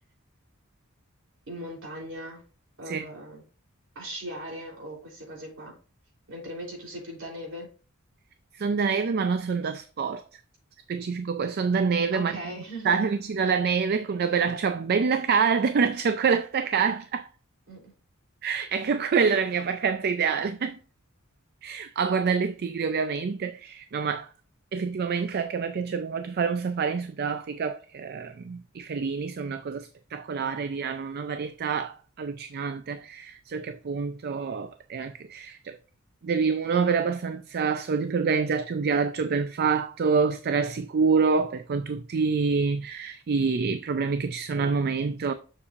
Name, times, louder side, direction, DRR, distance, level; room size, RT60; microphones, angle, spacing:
voice 1, 1.5-2.4 2.8-3.4 3.9-5.7 6.3-7.7 12.1-13.1 17.7-17.9, right 1 dB, 65° right, 3.4 m, -39 dB
voice 2, 8.6-10.2 10.9-12.3 12.9-17.3 18.4-20.8 21.6-24.3 24.7-35.8 36.2-45.3, right 5 dB, 45° right, 0.4 m, -26 dB
7.0 x 6.7 x 2.5 m
head